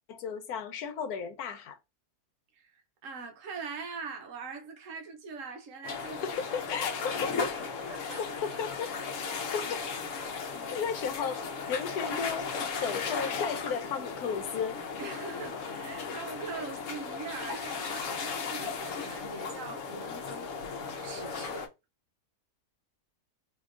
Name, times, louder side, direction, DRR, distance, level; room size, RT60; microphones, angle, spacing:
voice 1, 0.1-1.8 6.2-7.3 8.2-8.9 9.5-9.8 10.7-11.4 11.7-12.5 12.8-14.8, left 6 dB, 85° left, 1.2 m, -34 dB
voice 2, 2.5-6.2 7.9-8.2 9.2-9.4 9.6-9.7 10.5-10.8 15.0-20.5 21.0-21.7, right 4 dB, 65° right, 0.9 m, -42 dB
sound 1, 5.8-21.7, left 5 dB, 65° left, 1.0 m, -36 dB
4.5 x 2.8 x 2.4 m
omnidirectional pair, 1.6 m